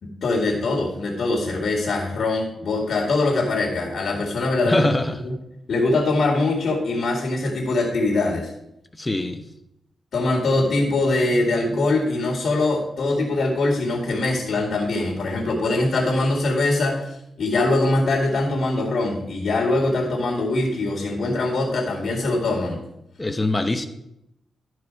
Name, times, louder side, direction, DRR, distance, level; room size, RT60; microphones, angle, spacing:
voice 1, 0.0-4.9 5.2-5.3 5.7-8.5 10.1-17.0 17.4-22.8, left 2 dB, 65° left, -2 dB, 2.1 m, -22 dB
voice 2, 4.6-5.3 8.9-9.4 21.3-21.4 23.2-23.9, left 2 dB, 20° left, 8 dB, 0.7 m, -23 dB
12.5 x 4.8 x 4.7 m, 0.81 s
cardioid pair, 105°, 0 cm